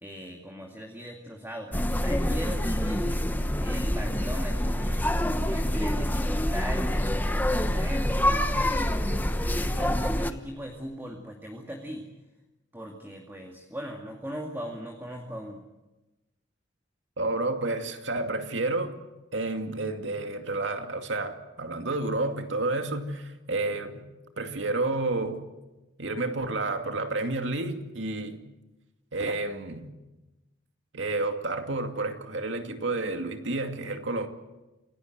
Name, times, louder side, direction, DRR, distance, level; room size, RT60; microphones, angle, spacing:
voice 1, 0.0-3.2 3.6-5.1 5.5-9.1 9.5-12.1 12.7-15.6, equal, 10° right, 2.4 m, -39 dB
sound 1, 1.7-10.3, left 1 dB, 10° left, 1.1 m, -26 dB
voice 2, 17.2-19.0 19.3-24.1 24.4-25.4 26.0-28.5 29.1-29.9 30.9-34.3, right 2 dB, 75° right, 2.4 m, -30 dB
28.5 x 17.5 x 8.0 m
head